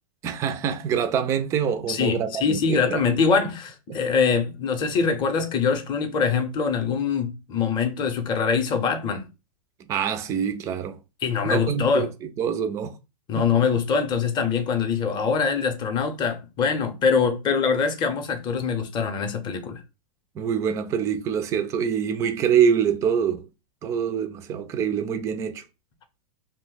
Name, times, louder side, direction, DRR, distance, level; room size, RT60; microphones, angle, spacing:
voice 1, 0.2-3.0 3.9-4.0 9.9-11.0 11.5-13.0 13.4-13.5 20.4-23.5 23.8-25.6, right 7 dB, 15° right, 0.3 m, -25 dB
voice 2, 1.9-9.3 11.2-12.1 13.3-19.8, left 5 dB, 25° left, 0.6 m, -23 dB
2.6 x 2.0 x 3.9 m
hypercardioid pair, 130°, 18 cm